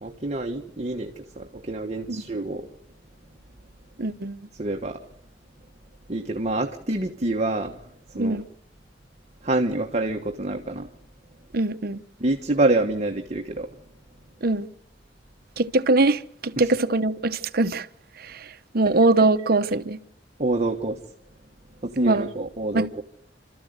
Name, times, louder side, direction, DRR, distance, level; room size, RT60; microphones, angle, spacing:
voice 1, 0.0-2.7 4.6-5.0 6.1-7.8 8.2-8.4 9.4-10.9 12.2-13.7 20.4-21.0 21.8-23.0, right 2 dB, 40° right, 1.3 m, -26 dB
voice 2, 4.0-4.5 8.2-8.5 11.5-12.0 14.4-14.7 15.6-17.9 18.2-20.0 22.0-22.3 22.7-22.9, right 2 dB, 60° right, 0.9 m, -22 dB
29.5 x 13.5 x 8.0 m
head